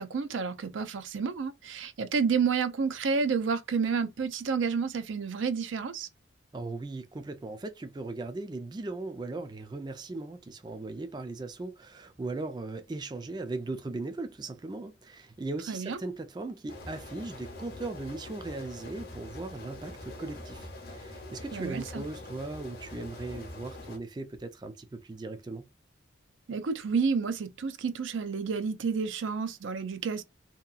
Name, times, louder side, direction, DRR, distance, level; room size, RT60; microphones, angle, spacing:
voice 1, 0.0-6.1 15.7-16.0 21.5-22.0 26.5-30.2, right 5 dB, 85° right, 0.5 m, -30 dB
voice 2, 6.5-25.7, right 2 dB, 20° right, 0.3 m, -38 dB
sound 1, 16.7-24.0, left 2 dB, 50° left, 0.8 m, -44 dB
2.8 x 2.3 x 2.3 m
head